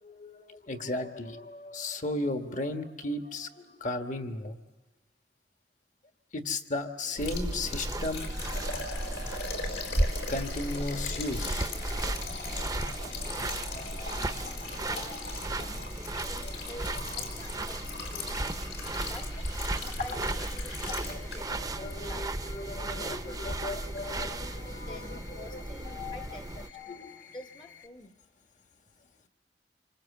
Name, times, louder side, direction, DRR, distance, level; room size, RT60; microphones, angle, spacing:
voice 1, 0.0-4.6 6.3-14.9 15.6-15.7 16.2-17.0 19.8-20.2 20.8-26.4 26.7-27.3, left 2 dB, 45° left, 6 dB, 1.6 m, -37 dB
Liquid, 7.2-21.6 21.9-22.0 22.5-22.6, left 4 dB, 70° left, 4.8 m, -40 dB
sound 1, 7.2-26.7, right 1 dB, 20° right, 0.8 m, -35 dB
sound 2, 10.6-27.9, left 8 dB, 90° left, 2.7 m, -54 dB
voice 2, 14.7-15.2 15.6-18.5 19.0-19.4 20.0-21.5 22.0-23.7 24.7-26.8 27.3-28.1, left 1 dB, 25° left, 5 dB, 1.1 m, -49 dB
27.0 x 24.5 x 7.3 m, 1.2 s
head